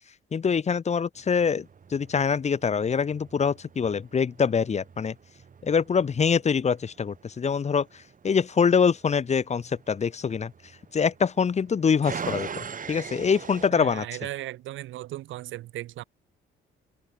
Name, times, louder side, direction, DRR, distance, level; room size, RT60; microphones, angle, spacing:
voice 1, 0.3-1.7 1.9-5.1 5.6-10.5 10.9-14.1, left 6 dB, 35° left, 0.9 m, -24 dB
sound 1, 1.2-13.7, right 6 dB, 40° right, 4.5 m, -43 dB
voice 2, 13.7-16.0, right 15 dB, 75° right, 0.6 m, -36 dB
cardioid pair, 90°, 20 cm